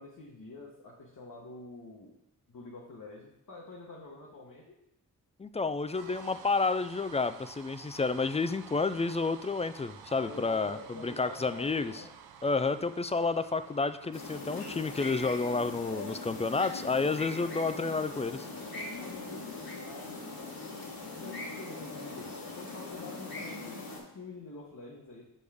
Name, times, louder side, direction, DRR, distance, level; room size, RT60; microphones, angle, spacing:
voice 1, 0.0-2.2 2.5-4.8 10.2-12.1 16.0-16.3 18.6-20.4 21.1-25.2, left 2 dB, 60° left, -2 dB, 1.2 m, -47 dB
voice 2, 5.4-11.9 12.4-18.5, left 4 dB, 20° left, 12 dB, 0.3 m, -30 dB
sound 1, 5.9-16.2, right 7 dB, 85° right, 0.5 m, -52 dB
sound 2, 14.1-24.0, left 2 dB, 75° left, 1.6 m, -41 dB
6.3 x 5.4 x 3.4 m, 0.81 s
cardioid pair, 45°, 36 cm